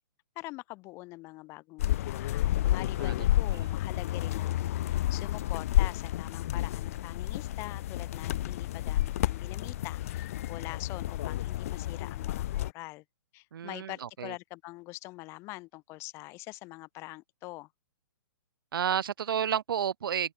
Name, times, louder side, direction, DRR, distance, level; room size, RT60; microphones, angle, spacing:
voice 1, 0.4-13.0 13.3-17.7, left 22 dB, 20° left, 4.2 m, -44 dB
sound 1, 1.8-12.7, left 14 dB, 40° left, 1.1 m, -30 dB
voice 2, 13.5-14.3 18.7-20.3, right 8 dB, 65° right, 0.9 m, -31 dB
open air
hypercardioid pair, 165°, 12 cm